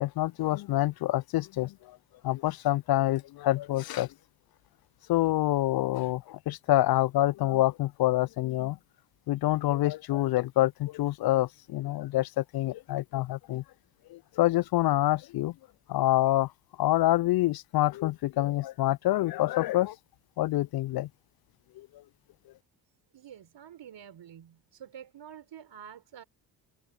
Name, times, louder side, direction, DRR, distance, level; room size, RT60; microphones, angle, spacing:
voice 1, 0.0-1.7 2.2-4.1 5.1-8.8 9.3-13.6 14.1-15.5 15.9-16.5 16.8-20.0 20.4-21.1 21.8-21.9, left 16 dB, 50° left, 0.5 m, -26 dB
voice 2, 23.1-26.2, right 9 dB, 60° right, 4.1 m, -48 dB
hypercardioid pair, 45°, 50 cm